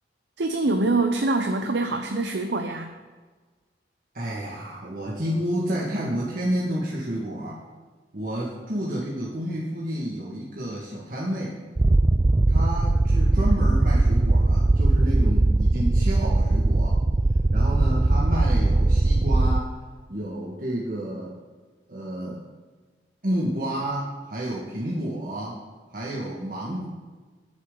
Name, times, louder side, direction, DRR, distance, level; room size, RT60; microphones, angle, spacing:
voice 1, 0.4-2.9, right 2 dB, 75° right, 5 dB, 0.8 m, -24 dB
voice 2, 4.1-7.6 8.1-11.6 12.5-17.0 17.5-19.8 20.1-21.3 21.9-22.4 23.2-25.6 25.9-26.9, equal, 50° right, -5 dB, 1.9 m, -30 dB
sound 1, 11.8-19.6, right 2 dB, 20° right, 0.3 m, -20 dB
21.5 x 7.3 x 3.9 m, 1.4 s
head